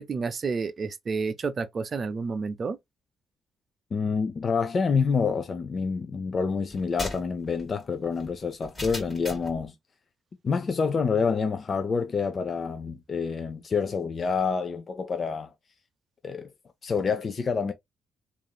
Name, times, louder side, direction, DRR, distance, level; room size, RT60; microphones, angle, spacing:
voice 1, 0.0-2.8, right 4 dB, 40° right, 0.4 m, -30 dB
voice 2, 3.9-9.7 10.4-15.5 16.2-16.5 16.8-17.7, left 5 dB, 40° left, 0.4 m, -27 dB
sound 1, 6.7-9.6, left 1 dB, 20° left, 1.7 m, -38 dB
3.0 x 2.5 x 2.2 m
cardioid pair, 90°, 0 cm